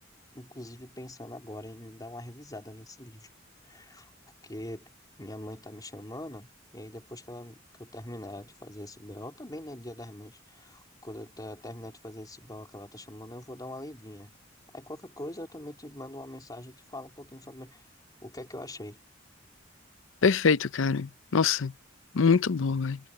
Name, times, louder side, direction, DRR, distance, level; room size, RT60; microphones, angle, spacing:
voice 1, 0.3-3.3 3.6-4.1 4.4-4.9 5.2-14.3 14.7-17.8 18.2-19.0, left 1 dB, 20° left, 3.8 m, -43 dB
voice 2, 20.2-21.7 22.1-23.0, left 5 dB, 80° left, 0.6 m, -24 dB
head